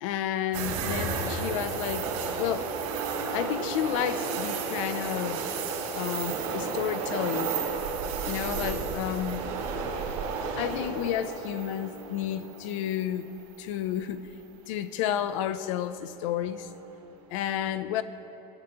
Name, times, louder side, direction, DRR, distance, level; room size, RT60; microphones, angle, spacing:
voice 1, 0.0-2.7 3.3-5.5 5.9-7.5 8.3-9.4 10.6-13.3 13.6-14.3 14.7-16.7 17.3-18.0, left 11 dB, 65° left, 13 dB, 0.4 m, -31 dB
sound 1, 0.5-13.6 14.0-14.1 16.5-16.9, right 5 dB, 70° right, 2.3 m, -32 dB
17.5 x 6.7 x 2.9 m, 3.0 s
supercardioid pair, 165°, 18 cm